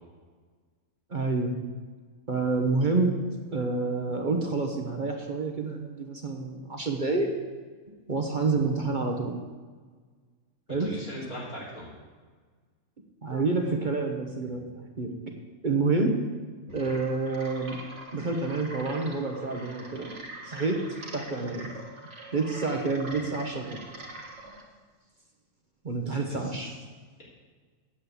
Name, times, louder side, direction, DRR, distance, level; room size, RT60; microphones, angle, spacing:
voice 1, 1.1-1.5 2.3-3.1 3.5-7.3 8.1-9.4 10.7-10.9 13.2-15.1 15.6-16.1 16.7-17.8 18.1-20.1 20.4-21.7 22.3-23.8 25.8-26.7, right 3 dB, 40° right, 3 dB, 1.0 m, -28 dB
voice 2, 10.8-11.9 26.1-26.7, left 1 dB, 85° left, -7 dB, 4.3 m, -40 dB
sound 1, 16.7-24.6, right 1 dB, 55° right, 1.8 m, -44 dB
8.6 x 7.4 x 8.1 m, 1.5 s
omnidirectional pair, 1.5 m